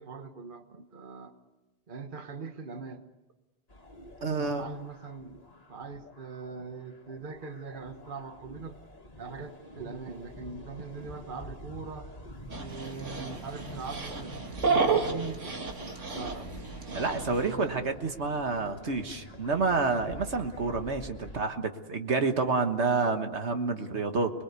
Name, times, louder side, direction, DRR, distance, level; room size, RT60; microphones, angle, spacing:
voice 1, 0.0-1.3 1.9-3.0 4.4-5.4 5.7-8.8 9.2-12.1 12.6-15.5 16.1-16.5 17.3-17.9, right 5 dB, 45° right, 7 dB, 1.5 m, -41 dB
sound 1, 3.7-21.4, left 1 dB, 35° left, 2.2 m, -47 dB
voice 2, 4.2-4.6 16.9-24.3, right 4 dB, 70° right, 6 dB, 1.7 m, -29 dB
Dog, 12.5-17.5, right 4 dB, 90° right, 2.6 m, -31 dB
29.0 x 21.0 x 8.2 m, 1.1 s
omnidirectional pair, 1.2 m